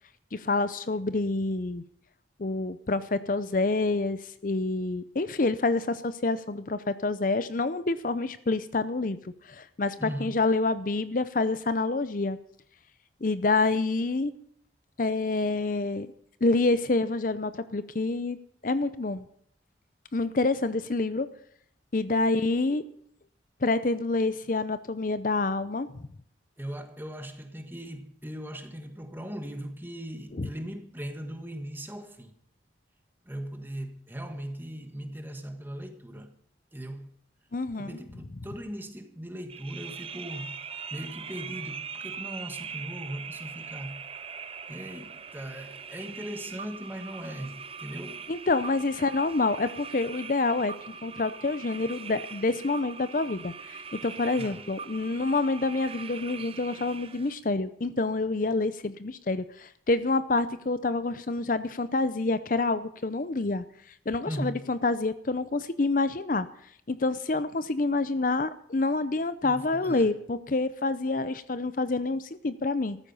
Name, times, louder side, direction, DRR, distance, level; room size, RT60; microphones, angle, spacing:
voice 1, 0.3-1.8 2.4-12.4 13.2-14.3 15.0-16.1 16.4-18.4 18.6-19.3 20.1-21.3 21.9-22.8 23.6-25.9 30.3-30.5 37.5-38.0 48.3-50.7 51.0-63.6 64.1-66.5 66.9-73.0, left 3 dB, 45° left, 0.6 m, -27 dB
voice 2, 10.0-10.4 26.6-32.3 33.2-36.3 36.7-37.1 37.7-40.6 40.9-44.0 44.7-48.2 54.4-54.7 64.3-64.6 69.4-70.1, equal, 10° right, 1.6 m, -39 dB
sound 1, 39.5-57.3, right 6 dB, 30° right, 0.6 m, -41 dB
14.5 x 13.0 x 5.5 m
head